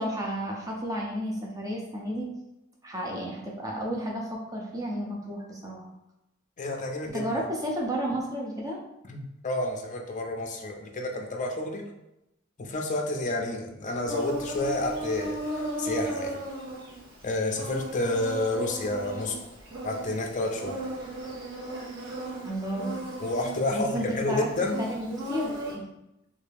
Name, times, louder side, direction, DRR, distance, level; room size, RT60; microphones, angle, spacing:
voice 1, 0.0-2.3 2.8-5.9 7.1-8.8 22.4-22.9 23.7-24.5 24.8-25.9, equal, 15° right, -2 dB, 0.7 m, -32 dB
voice 2, 6.6-7.2 9.1-11.8 12.6-16.4 17.2-19.4 19.8-20.8 23.2-24.8, left 2 dB, 35° left, 2 dB, 0.5 m, -30 dB
Insect, 14.0-25.7, right 1 dB, 80° right, 1.4 m, -36 dB
3.2 x 2.8 x 3.4 m, 0.90 s
head